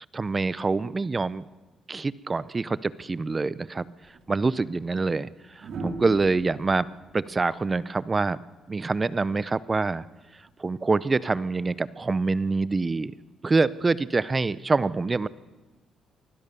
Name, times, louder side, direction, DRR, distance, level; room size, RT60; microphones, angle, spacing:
voice 1, 0.1-1.4 1.9-3.8 4.3-6.9 7.1-8.4 8.7-10.0 10.6-13.1 13.4-15.3, right 3 dB, 25° right, 18 dB, 0.6 m, -25 dB
sound 1, 4.0-4.2 5.6-8.6 10.2-10.5, right 3 dB, 65° right, 3.3 m, -40 dB
24.0 x 16.0 x 7.0 m, 1.2 s
cardioid pair, 90°, 0 cm